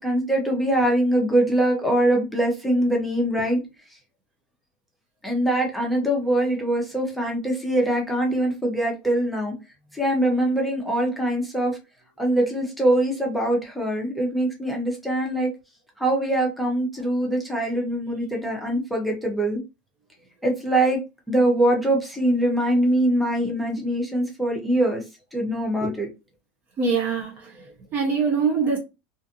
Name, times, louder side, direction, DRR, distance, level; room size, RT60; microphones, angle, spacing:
voice 1, 0.0-3.6 5.2-9.5 9.9-11.8 12.2-15.5 16.0-19.6 20.4-21.0 21.3-25.0 25.3-26.1, right 1 dB, ahead, 0.8 m, -23 dB
voice 2, 26.8-28.8, right 5 dB, 30° right, 0.7 m, -24 dB
2.5 x 2.4 x 2.6 m
supercardioid pair, 145°, 6 cm